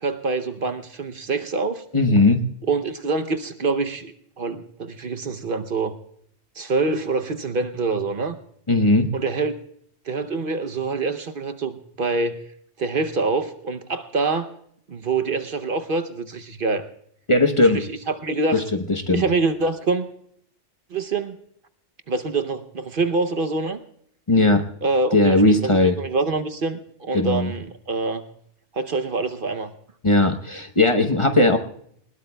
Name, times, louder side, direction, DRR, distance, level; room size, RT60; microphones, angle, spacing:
voice 1, 0.0-1.8 2.7-5.9 6.6-8.4 9.1-9.5 10.1-12.4 12.8-14.5 14.9-16.9 17.7-18.6 19.1-20.1 20.9-21.4 22.1-23.8 24.8-28.2 28.7-29.7, right 3 dB, 50° right, 9 dB, 0.9 m, -25 dB
voice 2, 1.9-2.4 8.7-9.1 17.3-17.8 18.5-18.6 18.9-19.2 24.3-24.6 25.1-26.0 27.1-27.5 30.0-31.6, left 2 dB, 30° left, 5 dB, 0.9 m, -18 dB
21.0 x 20.0 x 2.2 m, 0.68 s
omnidirectional pair, 1.2 m